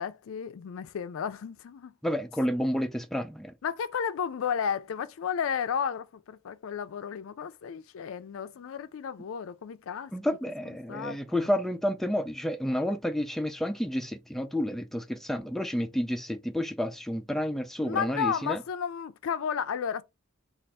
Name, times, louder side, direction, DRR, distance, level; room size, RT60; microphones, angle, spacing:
voice 1, 0.0-1.9 3.6-10.1 10.9-11.5 17.8-20.0, left 7 dB, 70° left, 0.4 m, -33 dB
voice 2, 2.0-3.5 10.1-18.6, equal, ahead, 0.3 m, -30 dB
3.3 x 2.4 x 4.1 m
head